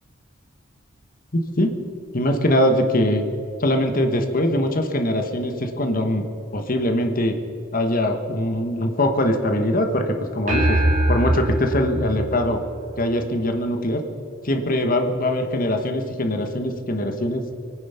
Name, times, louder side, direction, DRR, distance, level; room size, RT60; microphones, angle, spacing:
voice 1, 1.3-1.8 2.1-3.2 3.6-6.2 6.5-7.3 7.7-10.8 11.1-12.6 13.0-14.0 14.4-17.4, left 1 dB, 45° left, 5 dB, 1.2 m, -22 dB
sound 1, 10.5-13.1, right 1 dB, 40° right, 3.0 m, -22 dB
23.0 x 9.4 x 5.7 m, 2.7 s
head